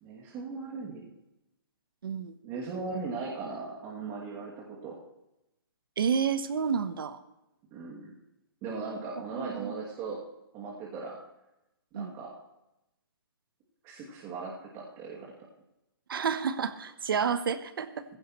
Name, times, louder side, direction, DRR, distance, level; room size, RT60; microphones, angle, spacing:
voice 1, 0.0-1.1 2.4-5.0 7.7-8.1 8.6-10.2 10.5-11.2 12.0-12.3 13.8-15.3, right 4 dB, 25° right, -4 dB, 2.5 m, -38 dB
voice 2, 2.0-2.3 6.0-7.2 9.3-9.7 11.9-12.1 16.1-17.9, right 6 dB, 70° right, 11 dB, 1.0 m, -30 dB
16.0 x 15.5 x 3.1 m, 0.90 s
hypercardioid pair, 150°, 12 cm